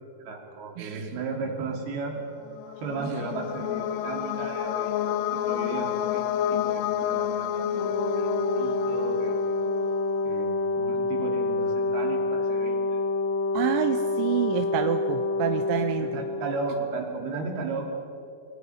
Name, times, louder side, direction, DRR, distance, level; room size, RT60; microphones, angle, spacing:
voice 1, 0.2-2.2 2.8-6.2 6.5-8.3 8.5-9.4 10.2-13.0 16.1-17.9, right 4 dB, 55° right, 1 dB, 4.4 m, -35 dB
voice 2, 0.8-1.1 3.0-3.2 13.5-16.2, right 12 dB, 80° right, 7 dB, 2.8 m, -28 dB
sound 1, 2.4-10.2, left 10 dB, 80° left, 3.3 m, -30 dB
Brass instrument, 7.7-16.5, left 2 dB, 60° left, 7.5 m, -27 dB
29.0 x 19.0 x 5.7 m, 2.8 s
omnidirectional pair, 5.8 m